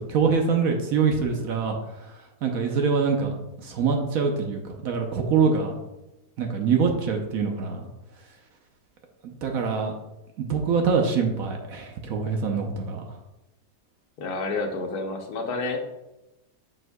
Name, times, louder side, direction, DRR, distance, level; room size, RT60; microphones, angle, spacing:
voice 1, 0.0-1.8 2.4-3.3 3.6-5.7 6.4-7.8 9.2-9.9 10.4-13.0, right 5 dB, 65° right, 3 dB, 1.1 m, -24 dB
voice 2, 14.2-15.8, left 3 dB, 70° left, 3 dB, 1.3 m, -29 dB
6.9 x 6.2 x 2.2 m, 0.96 s
omnidirectional pair, 1.8 m